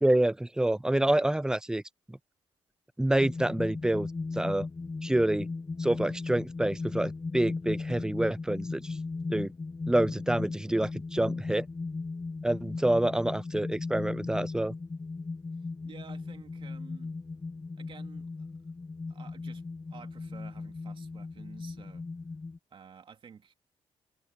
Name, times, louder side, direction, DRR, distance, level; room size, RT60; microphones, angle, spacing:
voice 1, 0.0-1.8 2.1-2.2 3.0-4.1 4.3-4.7 5.0-5.5 5.8-8.8 9.3-9.5 9.9-11.6 12.4-14.7, right 1 dB, 5° right, 0.4 m, -27 dB
sound 1, 3.2-22.6, left 3 dB, 30° left, 1.3 m, -37 dB
voice 2, 15.8-17.1 17.8-18.5 19.1-19.6 19.9-22.1 22.7-23.5, right 6 dB, 50° right, 2.8 m, -51 dB
cardioid pair, 80°, 11 cm